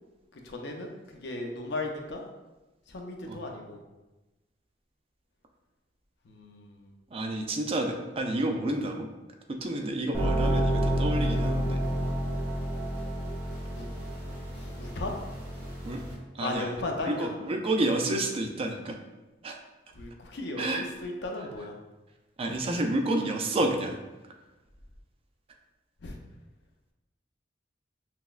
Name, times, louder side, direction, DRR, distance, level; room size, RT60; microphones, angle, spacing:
voice 1, 0.3-2.2 2.9-3.8 6.2-6.9 13.7-13.9 14.6-15.2 16.4-17.4 20.0-21.7 26.0-26.2, left 2 dB, 70° left, 2 dB, 0.5 m, -36 dB
voice 2, 7.1-9.1 9.5-11.8 15.9-16.0 16.3-19.0 19.4-19.6 20.6-20.8 22.4-23.9, right 1 dB, 30° right, 3 dB, 0.4 m, -30 dB
sound 1, 10.1-16.1, equal, 15° right, 1.3 m, -29 dB
5.8 x 2.1 x 2.4 m, 1.1 s
head